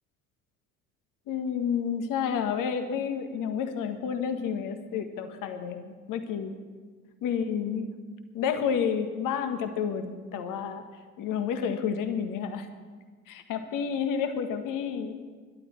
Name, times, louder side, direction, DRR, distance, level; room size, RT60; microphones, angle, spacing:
voice 1, 1.3-6.5 7.2-7.9 8.3-10.8 11.2-12.7 13.3-15.2, left 7 dB, 50° left, 8 dB, 1.6 m, -30 dB
21.0 x 12.0 x 4.5 m, 1.5 s
figure-of-eight pair, 60°, 42 cm